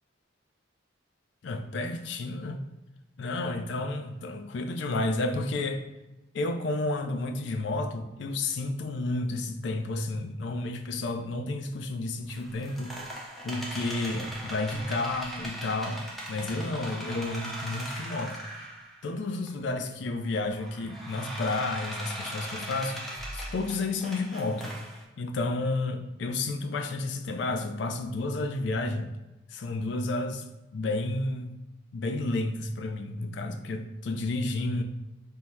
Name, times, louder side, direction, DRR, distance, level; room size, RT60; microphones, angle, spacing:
voice 1, 1.4-2.6 3.2-5.8 6.3-13.0 13.4-16.0 16.3-18.4 19.0-23.0 23.3-24.7 25.2-29.1 29.5-30.4 30.7-31.5 31.9-34.8, left 2 dB, 65° left, 5 dB, 0.4 m, -31 dB
sound 1, 12.3-19.1 19.5-19.6 20.3-25.0, right 1 dB, ahead, 0.4 m, -40 dB
sound 2, 22.3-24.1, equal, 20° left, 0.9 m, -45 dB
3.5 x 2.1 x 4.2 m, 0.99 s
head